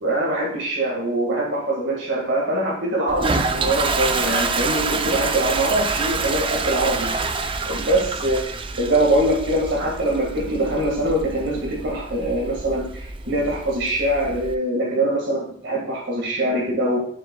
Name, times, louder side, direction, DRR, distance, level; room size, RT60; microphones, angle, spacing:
voice 1, 0.0-7.1 7.6-8.4 8.8-17.1, right 1 dB, 80° right, -3 dB, 1.9 m, -23 dB
Toilet flush, 3.1-14.5, right 4 dB, 30° right, 0.5 m, -27 dB
9.6 x 6.9 x 2.3 m, 0.66 s
head